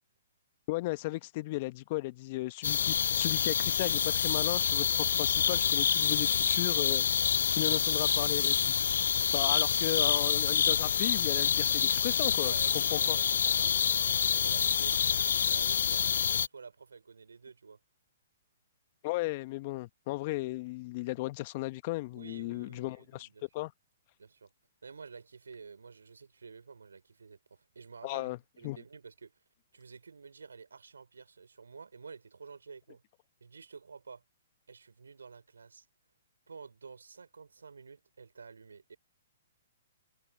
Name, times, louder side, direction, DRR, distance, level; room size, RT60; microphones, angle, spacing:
voice 1, 0.7-7.0 7.5-8.7 9.3-13.2 19.0-23.3 23.5-23.7 28.0-28.4 28.6-28.8, left 20 dB, 45° left, 1.4 m, -35 dB
sound 1, 2.6-16.5, left 7 dB, 70° left, 0.3 m, -27 dB
voice 2, 9.4-10.3 12.1-17.8 22.1-23.4 24.2-24.5 24.8-29.4 29.7-33.0 33.4-34.2 34.7-35.9 36.5-39.0, right 5 dB, 80° right, 5.2 m, -50 dB
hypercardioid pair, 125°, 0 cm